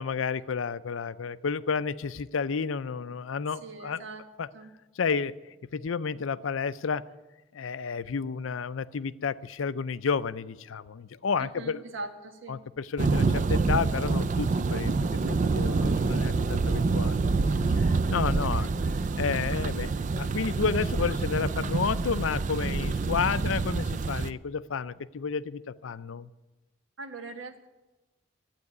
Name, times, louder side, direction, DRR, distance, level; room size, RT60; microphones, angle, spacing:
voice 1, 0.0-4.0 4.4-4.5 5.0-5.3 5.7-7.0 7.5-11.8 12.5-17.2 17.7-18.7 19.2-26.3, left 5 dB, 90° left, 16 dB, 0.5 m, -31 dB
voice 2, 3.6-4.2 4.5-4.7 11.4-12.6 18.4-18.7 27.0-27.7, right 3 dB, 80° right, 6 dB, 1.5 m, -41 dB
Thunder, 13.0-24.3, right 4 dB, 40° right, 0.4 m, -27 dB
sound 1, 13.8-19.0, equal, 25° right, 1.1 m, -45 dB
12.0 x 8.9 x 9.6 m, 1.1 s
head